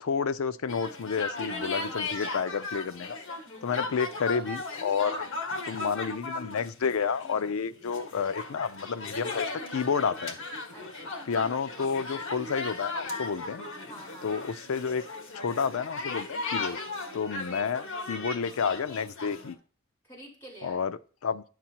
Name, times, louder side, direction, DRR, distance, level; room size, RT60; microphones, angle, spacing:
voice 1, 0.0-3.2 3.6-5.3 5.6-10.4 11.3-13.6 14.2-15.0 15.3-16.8 17.1-19.6 20.6-21.4, left 6 dB, 85° left, 13 dB, 0.5 m, -30 dB
sound 1, 0.7-19.5, left 3 dB, 70° left, 1.6 m, -37 dB
voice 2, 10.7-11.3 13.9-14.3 17.2-17.7 20.0-20.9, right 1 dB, 10° left, -5 dB, 4.3 m, -49 dB
11.0 x 7.5 x 2.9 m, 0.42 s
head